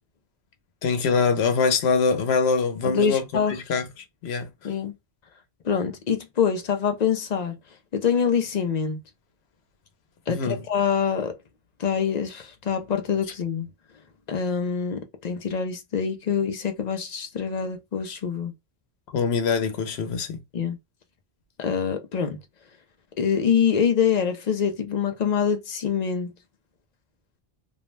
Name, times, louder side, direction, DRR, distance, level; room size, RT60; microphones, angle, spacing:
voice 1, 0.8-4.7 10.3-10.6 19.1-20.4, left 5 dB, 85° left, 0.9 m, -24 dB
voice 2, 2.8-3.5 4.6-4.9 5.6-7.6 7.9-9.0 10.3-11.4 11.8-13.7 14.3-18.5 20.5-20.8 21.6-22.4 23.2-26.3, left 7 dB, 55° left, 0.5 m, -25 dB
2.5 x 2.0 x 3.1 m
omnidirectional pair, 1.1 m